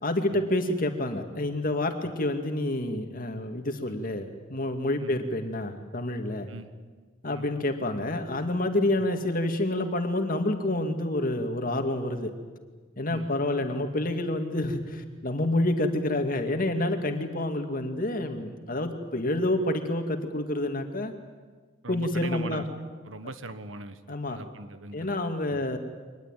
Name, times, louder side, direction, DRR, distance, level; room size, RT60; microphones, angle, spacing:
voice 1, 0.0-6.5 7.2-12.3 13.0-21.1 21.9-22.6 24.1-24.4 24.9-25.8, left 1 dB, 45° left, 5 dB, 2.2 m, -28 dB
voice 2, 21.8-22.6 23.1-25.1 25.5-25.6, right 3 dB, 90° right, 11 dB, 1.4 m, -40 dB
24.0 x 20.0 x 9.1 m, 1.4 s
head